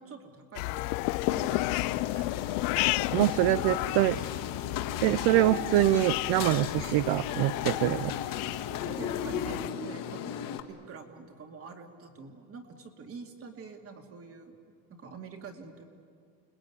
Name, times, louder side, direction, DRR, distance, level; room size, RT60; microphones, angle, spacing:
voice 1, 0.0-3.0 3.3-3.8 4.1-4.5 8.8-14.6 14.9-15.8, right 5 dB, 30° right, 4 dB, 2.6 m, -47 dB
sound 1, 0.6-9.7, left 21 dB, 70° left, 0.7 m, -33 dB
sound 2, 1.3-10.6, left 8 dB, 45° left, 1.8 m, -36 dB
sound 3, 2.1-7.2, left 12 dB, 90° left, 2.1 m, -45 dB
voice 2, 3.1-4.2 5.0-8.1, right 16 dB, 50° right, 16 dB, 0.6 m, -24 dB
29.0 x 20.5 x 9.6 m, 2.2 s
cardioid pair, 150°, 47 cm